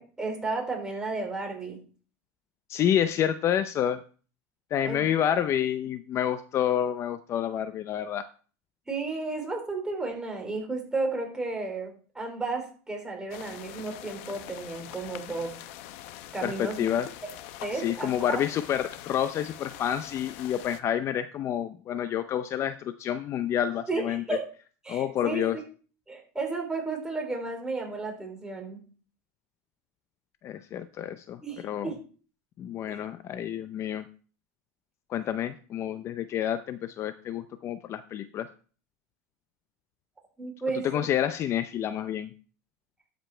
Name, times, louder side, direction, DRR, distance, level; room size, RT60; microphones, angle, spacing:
voice 1, 0.0-1.8 4.8-5.3 8.9-15.5 16.3-16.8 17.6-18.4 23.9-24.4 24.8-25.6 26.1-28.8 31.4-32.0 32.9-33.0 40.4-41.1, right 3 dB, 10° right, 1 dB, 3.3 m, -33 dB
voice 2, 2.7-4.0 4.7-8.2 16.4-17.1 17.7-24.2 24.9-25.6 30.4-31.9 32.6-34.0 35.1-38.5 40.8-42.3, left 10 dB, 35° left, 12 dB, 0.5 m, -29 dB
sound 1, 13.3-20.8, left 13 dB, 65° left, 0.9 m, -44 dB
12.5 x 5.1 x 4.4 m, 0.40 s
supercardioid pair, 125°, 8 cm